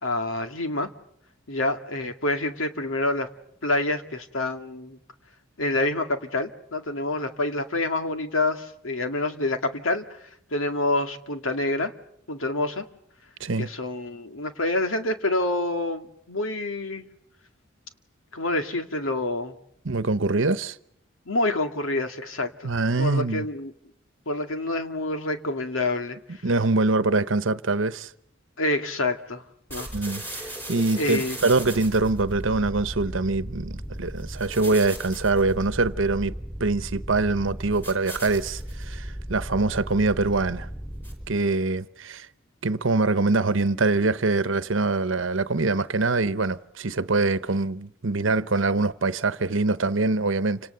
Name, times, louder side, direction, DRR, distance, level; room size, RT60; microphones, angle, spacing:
voice 1, 0.0-0.9 1.5-3.3 3.6-5.0 5.6-10.1 10.5-11.9 12.3-12.9 13.6-17.0 18.3-19.6 21.3-22.7 23.0-23.7 24.3-26.4 28.6-29.4 29.7-29.9 31.0-31.4, left 2 dB, 90° left, 2.2 m, -27 dB
voice 2, 19.8-20.8 22.6-23.5 26.4-28.1 29.9-36.3 36.6-40.7 41.3-42.3 42.6-50.6, right 3 dB, 75° right, 1.0 m, -24 dB
sound 1, 29.7-41.5, right 1 dB, 10° left, 5.2 m, -36 dB
29.0 x 26.5 x 6.9 m
head